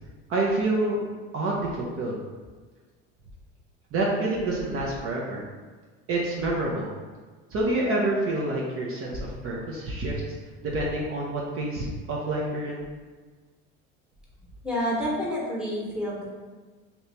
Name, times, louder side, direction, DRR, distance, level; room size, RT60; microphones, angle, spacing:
voice 1, 0.3-1.0 1.3-2.2 3.9-5.4 6.1-6.9 7.5-10.1 10.7-12.8, right 2 dB, 45° right, -3 dB, 0.7 m, -27 dB
voice 2, 14.6-16.2, equal, 5° right, -5 dB, 1.1 m, -28 dB
2.9 x 2.7 x 3.4 m, 1.4 s
supercardioid pair, 95°, 30 cm